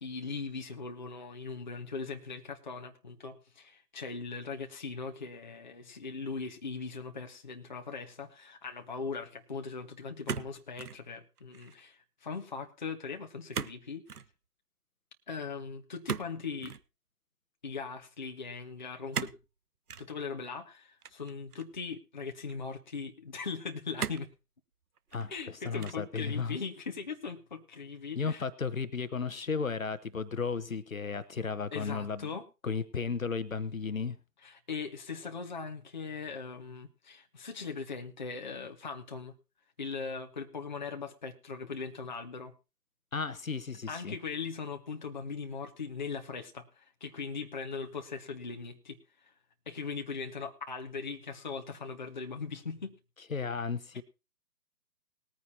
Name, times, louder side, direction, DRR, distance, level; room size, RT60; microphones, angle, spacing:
voice 1, 0.0-14.0 15.3-16.7 17.6-19.3 20.0-24.3 25.3-28.5 31.7-32.5 34.4-39.3 39.8-42.5 43.9-49.0 49.7-53.0, left 5 dB, 30° left, 4 dB, 0.9 m, -40 dB
sound 1, 10.3-11.0 11.4-11.8 13.5-13.8 14.1-14.3 16.1-16.8 19.1-19.4 19.9-20.1 21.0-21.8 22.5-22.6 24.0-24.4 25.0-25.4 25.8-26.2, right 6 dB, 65° right, 0.7 m, -38 dB
voice 2, 25.1-26.6 28.1-32.3 32.6-34.2 43.1-44.2 53.3-54.0, left 5 dB, 55° left, 14 dB, 1.0 m, -34 dB
20.0 x 9.4 x 2.8 m, 0.28 s
figure-of-eight pair, 150°, 49 cm